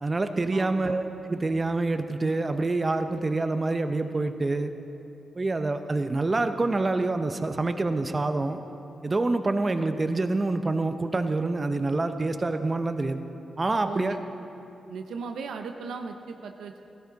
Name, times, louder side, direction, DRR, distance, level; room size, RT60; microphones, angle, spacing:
voice 1, 0.0-4.7 5.4-8.6 9.0-13.2 13.6-14.2, right 2 dB, 35° right, 8 dB, 0.7 m, -26 dB
voice 2, 0.5-0.9 13.8-14.2 14.9-16.8, right 5 dB, 80° right, 5 dB, 0.6 m, -37 dB
15.5 x 13.0 x 4.0 m, 2.9 s
supercardioid pair, 45°, 0 cm